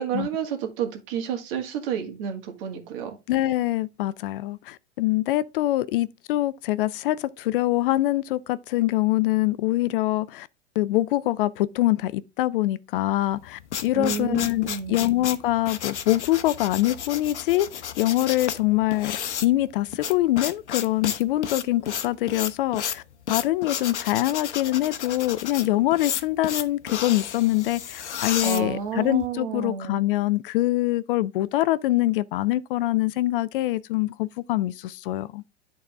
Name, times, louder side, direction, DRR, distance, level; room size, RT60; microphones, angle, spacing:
voice 1, 0.0-3.2 13.9-15.1 28.4-30.0, right 8 dB, 50° right, 2.1 m, -30 dB
voice 2, 3.3-10.5 10.8-17.7 18.0-19.2 19.4-23.0 23.3-35.4, left 16 dB, 50° left, 0.5 m, -24 dB
sound 1, 13.3-29.3, left 8 dB, 75° left, 0.9 m, -32 dB
10.5 x 4.2 x 3.5 m
hypercardioid pair, 95°, 34 cm